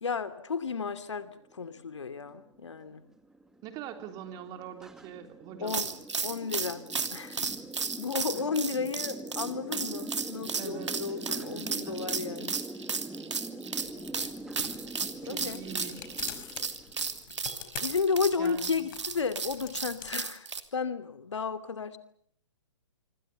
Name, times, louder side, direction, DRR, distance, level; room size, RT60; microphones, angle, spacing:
voice 1, 0.0-3.0 5.6-5.9 6.2-6.8 7.1-7.5 8.0-12.5 15.2-15.6 17.8-22.0, left 5 dB, 65° left, 12 dB, 2.7 m, -33 dB
sound 1, 1.2-17.6, right 2 dB, 5° right, 1.6 m, -43 dB
voice 2, 3.6-5.9 10.6-11.2 11.8-12.2 15.2-16.2 18.4-18.8, right 9 dB, 25° right, 7 dB, 3.3 m, -43 dB
sound 2, 5.7-20.6, right 5 dB, 65° right, 2.8 m, -34 dB
sound 3, 13.8-20.1, left 10 dB, 40° left, 4.7 m, -47 dB
26.5 x 26.0 x 6.9 m, 0.64 s
figure-of-eight pair, 125°, 16 cm